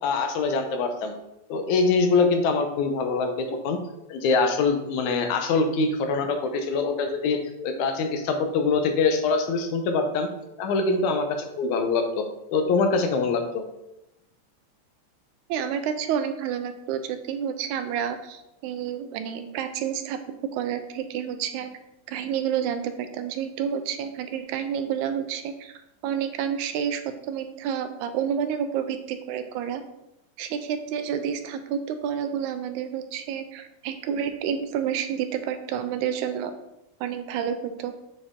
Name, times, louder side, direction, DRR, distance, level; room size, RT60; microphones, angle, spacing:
voice 1, 0.0-1.1 1.5-3.8 4.1-10.3 10.6-12.2 12.5-13.6, left 4 dB, 80° left, 5 dB, 2.2 m, -24 dB
voice 2, 15.5-20.2 20.5-21.7 22.1-25.7 26.0-29.8 30.4-36.5 37.0-37.9, right 8 dB, 80° right, 8 dB, 2.0 m, -29 dB
7.8 x 4.4 x 3.6 m, 0.90 s
omnidirectional pair, 3.4 m